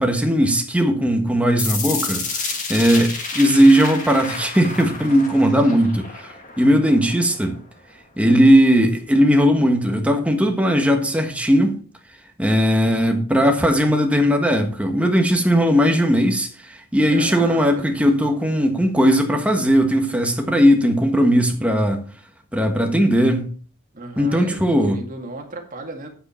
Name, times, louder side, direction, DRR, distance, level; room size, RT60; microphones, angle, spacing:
voice 1, 0.0-7.6 8.2-11.8 12.4-22.0 22.5-23.5 24.2-25.0, equal, 5° right, 1.3 m, -18 dB
sound 1, 1.6-7.6, left 4 dB, 35° left, 2.0 m, -30 dB
voice 2, 17.1-18.0 23.9-26.1, right 2 dB, 40° right, 2.0 m, -35 dB
9.8 x 8.0 x 4.4 m
head